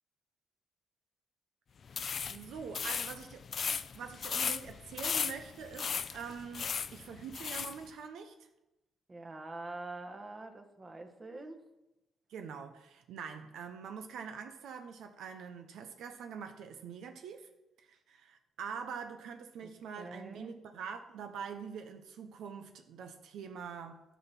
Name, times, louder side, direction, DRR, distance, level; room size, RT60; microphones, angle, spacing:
sound 1, 1.9-7.8, left 6 dB, 50° left, 0.5 m, -36 dB
voice 1, 2.3-3.4 3.9-8.5 12.3-17.5 17.8-24.0, right 6 dB, 75° right, 7 dB, 0.8 m, -44 dB
voice 2, 9.1-11.6 19.6-19.7 20.0-20.5, right 2 dB, 25° right, 5 dB, 1.3 m, -45 dB
11.0 x 6.2 x 5.9 m, 0.97 s
cardioid pair, 90°, 0 cm